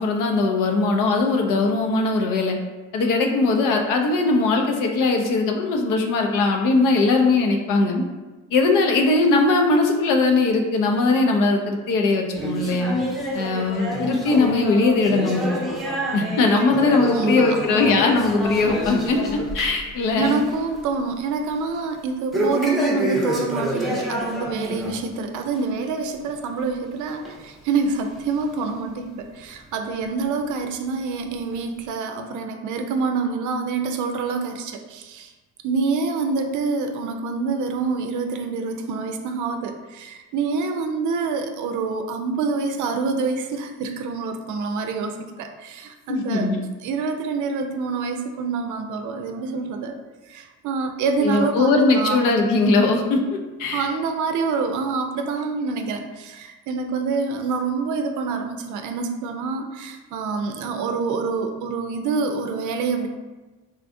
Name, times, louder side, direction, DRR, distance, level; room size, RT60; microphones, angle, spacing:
voice 1, 0.0-2.6 2.9-8.0 8.5-13.0 13.3-15.5 16.1-19.2 19.5-20.4 46.1-46.6 51.2-53.9, left 3 dB, 70° left, 3 dB, 0.6 m, -20 dB
sound 1, 12.3-19.9 20.2-20.5 20.9-21.0 22.3-25.0 25.4-25.6 26.3-26.4 27.2-27.3 28.1-28.2, equal, ahead, 0.7 m, -27 dB
voice 2, 16.5-17.6 20.1-35.3 35.6-46.5 46.8-50.0 50.3-52.2 53.7-63.1, right 4 dB, 65° right, 6 dB, 0.5 m, -26 dB
3.7 x 2.4 x 2.5 m, 1.2 s
supercardioid pair, 85°, 33 cm